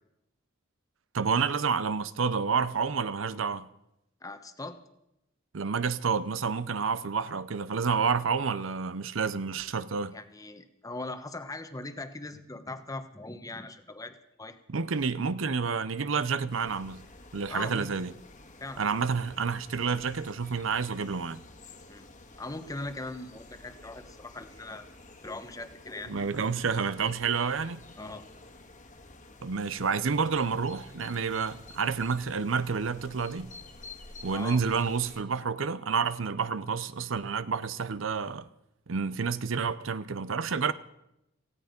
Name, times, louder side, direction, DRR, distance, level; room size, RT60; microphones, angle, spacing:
voice 1, 1.1-3.7 5.5-10.1 14.7-17.0 17.3-18.1 18.8-21.4 26.1-27.8 29.4-33.5 34.2-38.5 38.9-40.7, right 5 dB, 75° right, 0.7 m, -29 dB
voice 2, 4.2-4.8 10.1-14.6 17.5-17.9 18.6-19.0 21.9-22.1 22.4-24.9 25.2-26.1 28.0-28.3 34.3-34.6, left 2 dB, 15° left, 1.1 m, -40 dB
sound 1, 16.5-35.2, left 2 dB, 40° left, 1.7 m, -51 dB
17.0 x 16.0 x 5.2 m
head